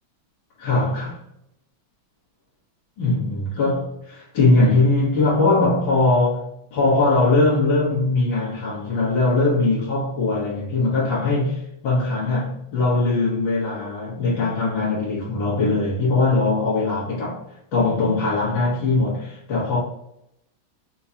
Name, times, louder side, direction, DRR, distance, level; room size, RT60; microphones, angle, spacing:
voice 1, 0.6-1.2 3.0-17.4 17.7-19.8, left 2 dB, 70° left, 2.3 m, -21 dB
5.5 x 3.1 x 2.8 m
omnidirectional pair, 2.2 m